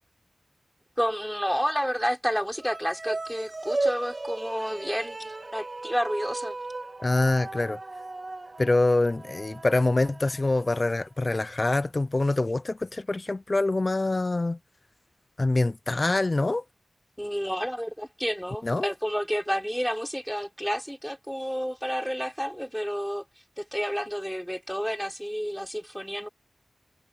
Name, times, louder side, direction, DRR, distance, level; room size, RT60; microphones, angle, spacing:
voice 1, 1.0-6.6 17.2-23.3 23.6-26.3, equal, ahead, 6.0 m, -30 dB
sound 1, 2.5-11.0, right 2 dB, 40° right, 2.5 m, -36 dB
voice 2, 7.0-7.8 8.6-14.6 15.4-16.6 18.6-18.9, left 2 dB, 40° left, 0.7 m, -25 dB
wide cardioid pair, 55°, 0 cm